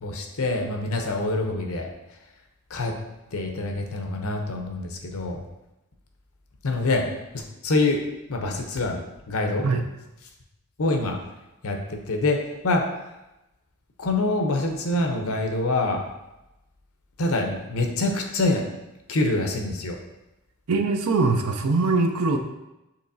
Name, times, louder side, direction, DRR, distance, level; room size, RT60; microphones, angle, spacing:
voice 1, 0.0-1.9 2.7-2.9 3.3-5.4 6.6-7.0 7.3-8.0 8.3-9.7 10.8-11.1 11.6-12.4 12.6-12.8 14.0-16.0 17.2-18.7 19.1-20.0, left 2 dB, 75° left, 3 dB, 0.7 m, -25 dB
voice 2, 20.7-22.4, right 3 dB, 80° right, 5 dB, 0.5 m, -22 dB
6.7 x 3.0 x 2.6 m, 0.96 s
head